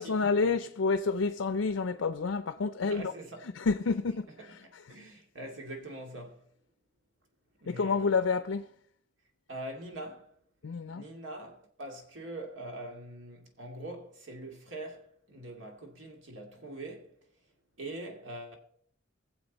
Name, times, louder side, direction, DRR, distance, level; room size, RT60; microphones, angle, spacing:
voice 1, 0.0-3.1 3.4-5.0 7.7-8.7 10.6-11.1, left 4 dB, 85° left, 0.5 m, -29 dB
voice 2, 2.8-3.5 4.9-6.4 7.6-8.1 9.5-10.3 10.9-17.1 17.8-18.5, right 1 dB, 75° right, 2.4 m, -43 dB
21.0 x 7.4 x 4.1 m
head